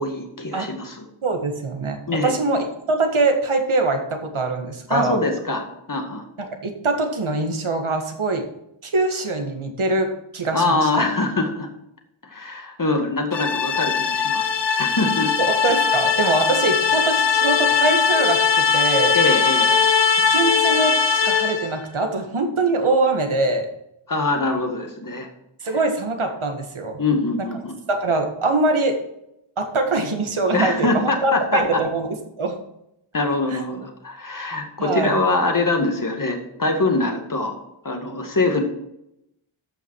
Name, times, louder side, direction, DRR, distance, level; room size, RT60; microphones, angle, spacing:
voice 1, 0.0-1.1 2.1-2.3 4.9-6.2 10.5-11.7 12.2-15.3 19.1-19.7 24.1-25.3 25.7-25.8 27.0-27.7 30.5-31.8 33.1-37.6 37.8-38.6, left 2 dB, 40° left, 4 dB, 2.1 m, -23 dB
voice 2, 1.2-5.2 6.4-8.4 8.8-10.9 15.4-19.2 20.3-23.7 25.6-27.0 27.9-29.0 29.6-32.1 32.4-32.6 33.5-33.6 34.8-35.2, right 3 dB, 75° right, 5 dB, 1.9 m, -23 dB
sound 1, 13.3-21.8, left 6 dB, 60° left, 0.9 m, -20 dB
13.5 x 5.9 x 4.7 m, 0.81 s
wide cardioid pair, 70°, 49 cm